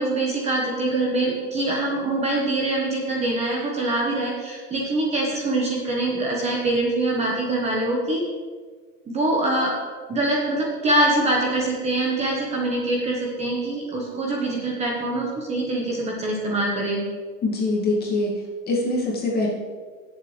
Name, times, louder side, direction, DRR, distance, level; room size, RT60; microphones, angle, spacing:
voice 1, 0.0-8.3 9.1-9.8 10.1-17.0, right 2 dB, 15° right, -2 dB, 1.3 m, -24 dB
voice 2, 17.4-18.3 18.7-19.5, left 2 dB, 20° left, -3 dB, 2.1 m, -23 dB
17.0 x 7.3 x 3.3 m, 1.5 s
supercardioid pair, 150°, 48 cm